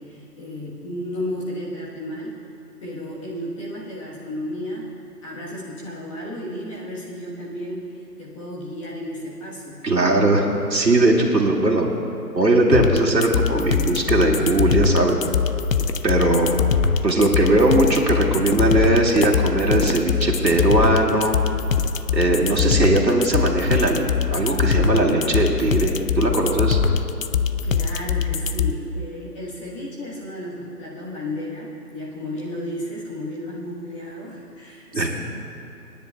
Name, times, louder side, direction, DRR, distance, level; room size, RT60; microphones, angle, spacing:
voice 1, 0.0-2.4 2.8-4.9 5.2-9.8 27.6-35.1, left 1 dB, 20° left, -5 dB, 1.3 m, -33 dB
voice 2, 9.8-11.9 12.3-15.2 16.0-16.5 17.0-21.4 22.1-24.0 24.3-26.8 34.9-35.1, right 2 dB, 90° right, -1 dB, 2.1 m, -19 dB
sound 1, 12.7-28.7, left 6 dB, 55° left, 0.5 m, -22 dB
sound 2, 13.1-13.2 13.8-13.9 14.4-14.6 15.1-15.4 15.8-16.3 16.5-21.5 21.8-22.1 22.4-22.6 23.1-23.2, left 5 dB, 85° left, 0.9 m, -34 dB
27.5 x 10.0 x 2.3 m, 3.0 s
figure-of-eight pair, 150°, 49 cm